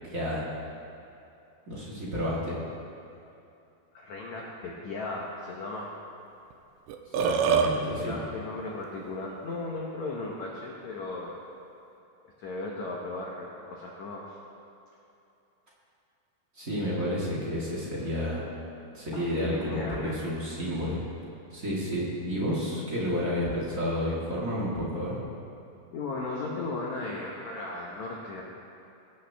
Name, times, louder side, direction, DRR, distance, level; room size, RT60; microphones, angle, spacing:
voice 1, 0.1-0.4 1.7-2.6 7.1-8.2 16.5-18.5 18.9-21.0 21.5-25.2, equal, 40° right, -8 dB, 1.2 m, -30 dB
voice 2, 3.9-5.9 8.0-11.4 12.4-14.4 19.1-20.1 25.9-28.4, left 2 dB, 90° left, -3 dB, 1.6 m, -36 dB
Burping eructation, 6.5-6.6 6.9-7.7, right 7 dB, 85° right, 2.9 m, -23 dB
21.0 x 8.3 x 3.4 m, 2.8 s
omnidirectional pair, 5.0 m